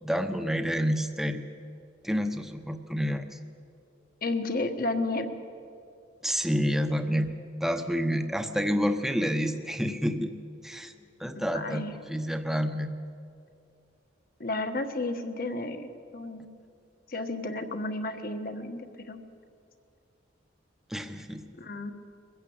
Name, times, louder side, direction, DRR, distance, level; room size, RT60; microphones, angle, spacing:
voice 1, 0.0-1.4 2.0-3.4 6.2-7.3 7.6-10.3 10.6-10.9 11.2-12.9 20.9-21.4, equal, ahead, 7 dB, 0.9 m, -29 dB
voice 2, 4.2-5.3 11.3-12.0 14.4-16.5 17.1-19.2 21.6-21.9, left 2 dB, 50° left, 7 dB, 1.4 m, -32 dB
23.0 x 14.5 x 8.7 m, 2.4 s
head